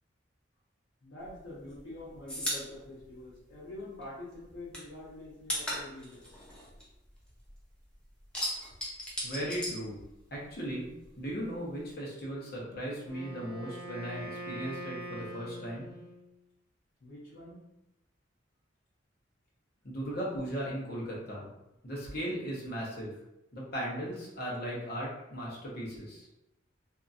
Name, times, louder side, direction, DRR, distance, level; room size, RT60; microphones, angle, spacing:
voice 1, 1.0-6.4 17.0-17.7, left 1 dB, 75° left, -7 dB, 0.8 m, -46 dB
sound 1, 1.2-4.0 4.3-7.6 7.9-10.5 10.8-11.9, equal, 5° left, 0.6 m, -38 dB
voice 2, 9.2-10.0 10.3-10.9 11.2-15.9 19.8-21.5 21.8-23.1 23.5-26.3, equal, 50° left, -4 dB, 0.9 m, -37 dB
Wind instrument woodwind instrument, 13.0-16.3, right 1 dB, 35° right, 0.9 m, -43 dB
2.7 x 2.6 x 2.4 m, 0.89 s
head